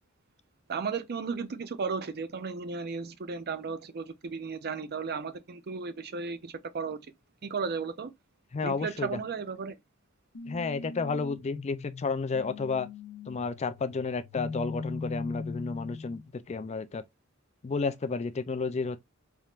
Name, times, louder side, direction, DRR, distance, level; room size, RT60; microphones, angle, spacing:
voice 1, 0.7-7.0 7.4-8.1 8.6-9.8, right 5 dB, 50° right, 0.6 m, -34 dB
voice 2, 8.5-9.1 10.5-12.9 13.3-17.0 17.6-19.0, left 4 dB, 30° left, 0.4 m, -31 dB
sound 1, 10.3-16.3, left 4 dB, 65° left, 0.8 m, -40 dB
4.2 x 3.5 x 2.4 m
head